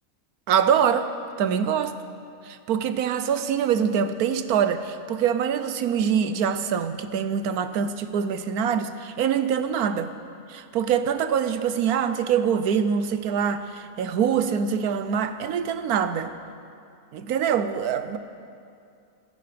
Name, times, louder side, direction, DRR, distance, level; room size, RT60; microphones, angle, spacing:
voice 1, 0.5-1.1 1.4-2.0 2.4-10.1 10.5-16.3 17.1-18.2, right 7 dB, 85° right, 11 dB, 1.3 m, -24 dB
26.0 x 10.5 x 5.1 m, 2.4 s
omnidirectional pair, 1.5 m